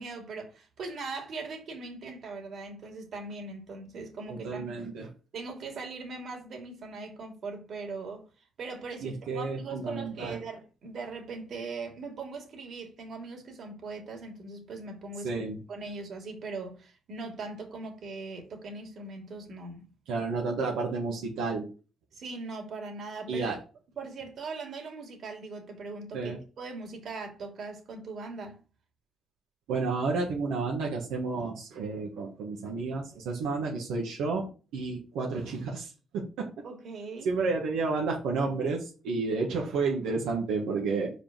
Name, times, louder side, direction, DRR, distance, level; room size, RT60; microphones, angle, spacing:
voice 1, 0.0-4.7 5.3-8.2 8.6-19.8 22.1-23.5 24.0-28.6 36.6-37.3, right 3 dB, 60° right, 2.7 m, -40 dB
voice 2, 4.3-5.1 9.0-10.4 15.2-15.6 20.1-21.7 23.3-23.6 26.1-26.4 29.7-34.5 34.7-36.5 37.2-41.1, right 4 dB, 90° right, 1.6 m, -31 dB
5.2 x 5.1 x 6.0 m
cardioid pair, 90°, 0 cm